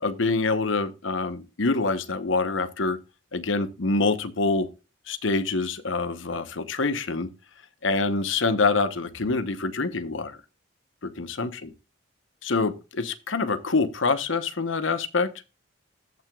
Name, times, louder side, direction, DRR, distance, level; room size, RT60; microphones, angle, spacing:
voice 1, 0.0-3.0 3.3-4.7 5.1-7.3 7.8-10.4 11.0-11.7 12.4-15.3, left 3 dB, 75° left, 0.9 m, -26 dB
14.5 x 6.0 x 2.3 m
head